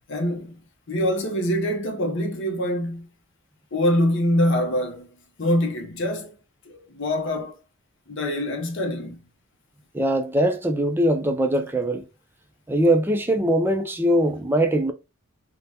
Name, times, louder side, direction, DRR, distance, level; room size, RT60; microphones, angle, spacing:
voice 1, 0.1-0.6 0.9-3.1 3.7-5.1 5.4-6.4 6.7-7.6 8.1-9.2, left 1 dB, 55° left, 0.7 m, -24 dB
voice 2, 9.9-12.0 12.7-14.9, right 1 dB, 10° right, 0.3 m, -21 dB
2.7 x 2.1 x 3.3 m
head